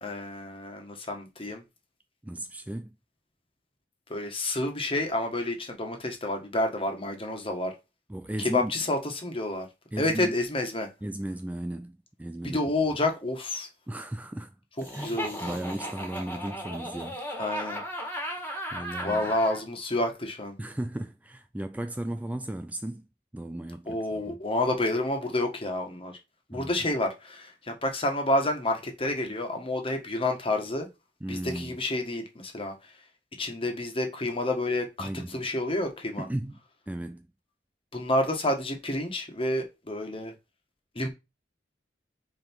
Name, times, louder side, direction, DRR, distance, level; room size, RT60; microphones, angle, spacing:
voice 1, 0.0-1.6 4.1-7.7 8.4-9.7 10.0-10.9 12.5-13.7 14.8-15.4 17.4-17.8 19.0-20.6 23.9-26.1 26.5-30.9 31.3-32.7 33.4-36.3 37.9-40.3 41.0-41.1, left 2 dB, 30° left, 1.6 m, -29 dB
voice 2, 2.2-2.9 8.1-8.7 9.9-10.4 11.0-12.6 13.9-14.5 14.9-17.2 18.7-19.3 20.6-23.1 23.3-24.4 26.5-26.7 31.2-31.8 35.0-35.4 36.2-36.6 36.9-37.3, right 1 dB, 10° right, 0.3 m, -35 dB
Laughter, 14.8-19.6, equal, 10° left, 1.8 m, -36 dB
5.6 x 4.8 x 4.6 m
head